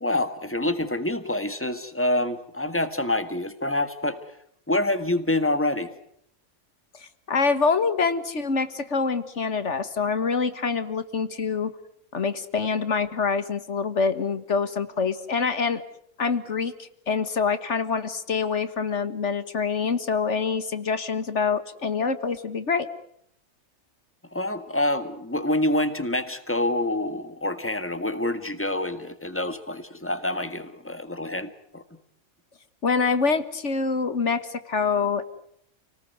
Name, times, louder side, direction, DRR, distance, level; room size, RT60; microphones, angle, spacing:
voice 1, 0.0-4.2 4.7-5.9 24.3-31.8, left 1 dB, 10° left, 10 dB, 1.8 m, -27 dB
voice 2, 7.0-11.7 12.1-15.8 16.2-22.9 32.8-35.3, left 5 dB, 60° left, 12 dB, 1.8 m, -25 dB
29.0 x 19.0 x 9.4 m, 0.71 s
omnidirectional pair, 1.4 m